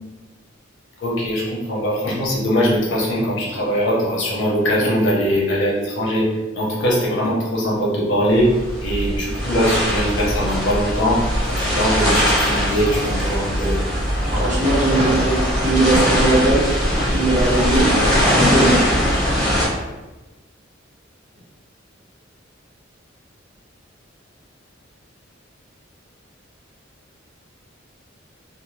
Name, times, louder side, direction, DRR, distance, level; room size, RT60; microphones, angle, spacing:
voice 1, 1.0-8.5 8.8-11.2 11.5-13.8, equal, 65° left, -4 dB, 0.8 m, -21 dB
sound 1, 8.3-19.7, equal, 5° left, 1.2 m, -20 dB
voice 2, 14.3-16.7 17.1-19.0, right 2 dB, 40° right, -5 dB, 0.8 m, -20 dB
2.7 x 2.1 x 3.1 m, 1.1 s
head